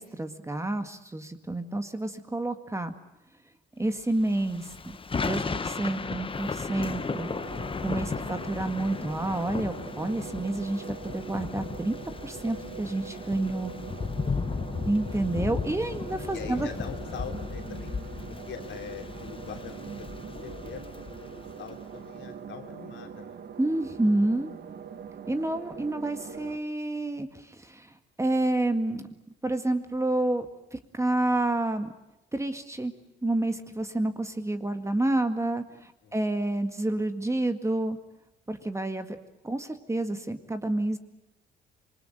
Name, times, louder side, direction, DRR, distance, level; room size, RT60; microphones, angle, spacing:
voice 1, 0.0-2.9 3.8-5.0 5.2-7.3 7.8-12.0 12.2-13.7 14.9-16.7 23.6-24.5 25.3-29.1 29.4-30.5 30.7-31.9 32.3-32.9 33.2-38.0 38.5-39.2 39.4-41.0, right 2 dB, 15° right, 8 dB, 1.9 m, -29 dB
Thunder / Rain, 4.2-21.7, left 4 dB, 25° left, 1.0 m, -35 dB
sound 1, 6.7-26.6, right 6 dB, 55° right, 1.9 m, -43 dB
voice 2, 15.5-15.8 16.3-17.9 18.5-23.4 36.0-36.3, left 7 dB, 70° left, 4 dB, 3.4 m, -44 dB
26.5 x 21.0 x 9.1 m, 0.91 s
cardioid pair, 90°, 20 cm